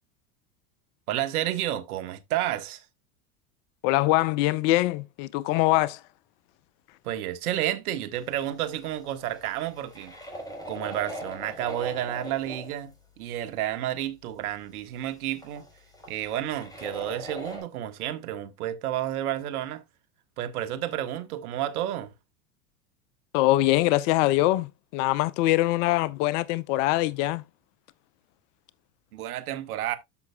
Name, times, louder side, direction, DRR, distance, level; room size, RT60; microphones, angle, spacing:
voice 1, 1.1-2.8 7.0-10.1 10.6-15.7 16.1-19.8 20.4-22.1 29.1-30.0, right 12 dB, 70° right, 1.4 m, -31 dB
voice 2, 3.8-6.0 23.3-27.4, left 17 dB, 50° left, 0.6 m, -23 dB
sound 1, 8.4-12.8 13.7-13.8 14.0-14.1 15.0-15.1 15.4-17.6, equal, 10° left, 4.0 m, -40 dB
13.0 x 5.8 x 2.2 m
hypercardioid pair, 85°, 46 cm